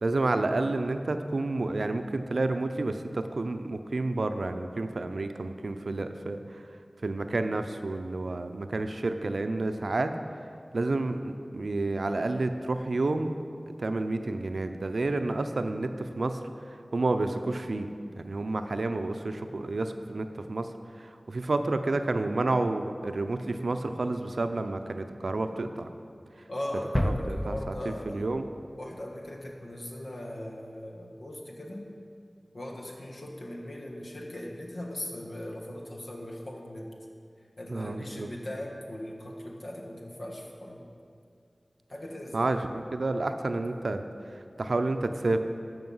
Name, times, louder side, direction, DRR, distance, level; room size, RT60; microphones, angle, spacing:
voice 1, 0.0-6.7 7.0-10.1 10.7-13.3 13.8-17.9 18.2-25.9 26.4-26.5 27.0-28.4 37.7-38.3 42.3-45.4, right 2 dB, 90° right, 8 dB, 0.5 m, -30 dB
voice 2, 26.5-28.3 28.8-31.9 32.5-36.9 37.6-40.9 41.9-42.5, left 1 dB, 80° left, -1 dB, 1.4 m, -39 dB
sound 1, 26.9-29.4, left 1 dB, 15° left, 0.5 m, -32 dB
13.5 x 5.2 x 5.5 m, 2.4 s
wide cardioid pair, 40°, 0 cm